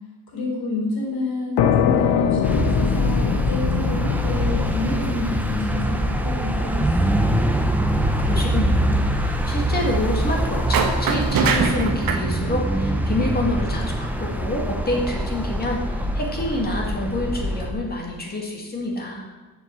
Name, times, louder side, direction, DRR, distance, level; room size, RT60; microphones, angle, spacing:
voice 1, 0.3-7.2, left 2 dB, 65° left, -2 dB, 3.7 m, -29 dB
sound 1, 1.6-9.0, left 8 dB, 85° left, 0.8 m, -24 dB
sound 2, 2.4-17.7, right 1 dB, 5° right, 0.6 m, -24 dB
voice 2, 8.0-19.3, left 1 dB, 25° left, 0 dB, 2.0 m, -27 dB
sound 3, 10.7-12.2, right 5 dB, 60° right, 1.1 m, -21 dB
7.2 x 6.6 x 7.5 m, 1.2 s
cardioid pair, 160°, 39 cm